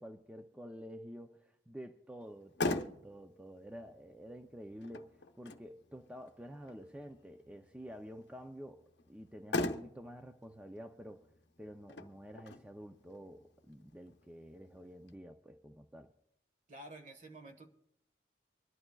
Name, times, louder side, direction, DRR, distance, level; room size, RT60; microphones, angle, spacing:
voice 1, 0.0-11.3 11.6-16.1, equal, 5° right, 5 dB, 0.4 m, -49 dB
Motor vehicle (road), 2.2-15.2, left 2 dB, 70° left, 0.7 m, -43 dB
voice 2, 16.7-17.7, right 1 dB, 45° right, 6 dB, 1.4 m, -50 dB
25.0 x 11.5 x 2.3 m, 0.76 s
head